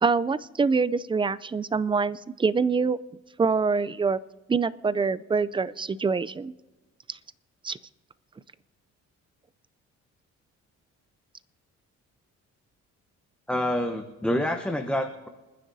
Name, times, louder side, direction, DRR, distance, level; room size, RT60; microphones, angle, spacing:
voice 1, 0.0-3.0 3.4-4.2 4.5-6.5 7.1-7.2 7.6-7.8, right 4 dB, 15° right, 17 dB, 0.4 m, -25 dB
voice 2, 13.5-15.3, left 1 dB, 5° left, 4 dB, 0.9 m, -27 dB
27.5 x 10.0 x 2.7 m, 1.2 s
cardioid pair, 90°, 30 cm